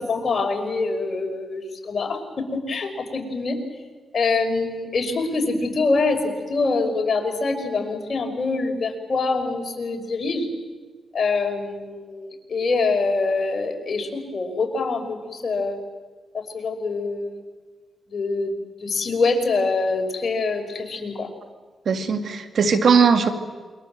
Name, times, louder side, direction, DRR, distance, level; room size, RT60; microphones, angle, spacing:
voice 1, 0.0-3.6 4.1-10.5 11.1-15.8 16.5-17.4 18.1-18.6 18.8-21.3, left 3 dB, 55° left, 4 dB, 5.4 m, -25 dB
voice 2, 21.9-23.3, right 5 dB, 70° right, 6 dB, 2.5 m, -18 dB
28.5 x 23.0 x 7.8 m, 1.4 s
cardioid pair, 65°, 0 cm